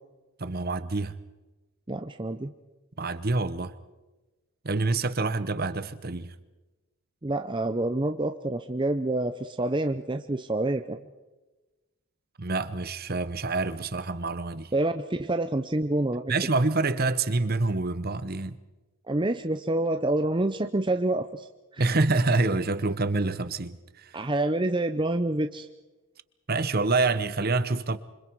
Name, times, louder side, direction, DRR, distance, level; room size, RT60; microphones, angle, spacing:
voice 1, 0.4-1.1 3.0-3.7 4.6-6.3 12.4-14.7 16.3-18.6 21.8-24.2 26.5-28.0, right 3 dB, 45° right, 1.0 m, -27 dB
voice 2, 1.9-2.5 7.2-11.0 14.7-16.3 19.1-21.5 21.7-21.8 24.1-25.7, right 2 dB, 20° right, 0.7 m, -27 dB
27.5 x 25.0 x 4.7 m
head